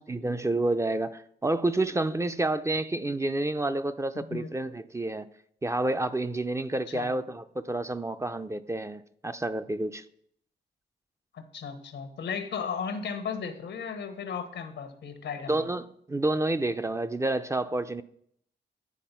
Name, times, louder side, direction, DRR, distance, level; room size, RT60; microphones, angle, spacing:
voice 1, 0.1-5.3 5.6-10.0 15.5-18.0, right 2 dB, 15° right, 0.4 m, -29 dB
voice 2, 4.1-4.5 6.9-7.1 11.3-15.7, left 6 dB, 90° left, 1.0 m, -35 dB
9.4 x 4.3 x 5.6 m
cardioid pair, 90°, 18 cm